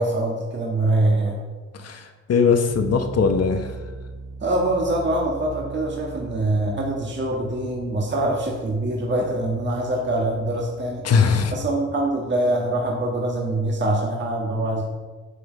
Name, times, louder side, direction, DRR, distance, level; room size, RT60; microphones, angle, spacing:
voice 1, 0.0-1.4 4.4-11.1 11.5-14.8, right 1 dB, 35° right, -1 dB, 1.7 m, -24 dB
voice 2, 1.7-3.7 11.0-11.5, left 5 dB, 55° left, 6 dB, 1.1 m, -20 dB
sound 1, 2.7-13.9, right 5 dB, 10° right, 1.6 m, -39 dB
8.3 x 7.9 x 5.1 m, 1.4 s
cardioid pair, 90°, 30 cm